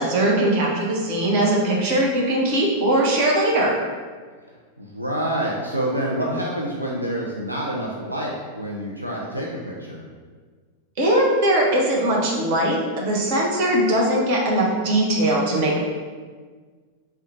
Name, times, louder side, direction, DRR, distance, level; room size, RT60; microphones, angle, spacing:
voice 1, 0.0-3.7 11.0-15.8, right 1 dB, 50° right, -2 dB, 0.8 m, -20 dB
voice 2, 4.5-10.0, right 1 dB, 85° right, -3 dB, 0.4 m, -27 dB
3.7 x 2.2 x 4.1 m, 1.5 s
figure-of-eight pair, 90°, 0 cm